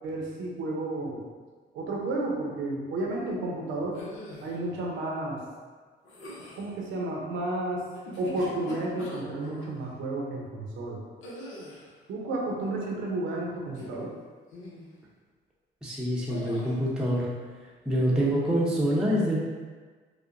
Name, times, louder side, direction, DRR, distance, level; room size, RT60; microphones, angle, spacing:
voice 1, 0.0-1.3 1.7-4.0 4.4-5.4 6.6-7.8 8.2-11.0 12.1-14.1, right 2 dB, 85° right, -2 dB, 0.8 m, -32 dB
sound 1, 3.9-4.6 6.0-6.7 7.9-9.7 11.2-11.9 13.7-14.2 14.5-14.9 16.3-16.7, left 1 dB, 80° left, 0.9 m, -42 dB
voice 2, 15.8-17.3 17.9-19.4, equal, 5° right, -6 dB, 0.7 m, -26 dB
4.7 x 2.2 x 2.6 m, 1.5 s
cardioid pair, 90°, 20 cm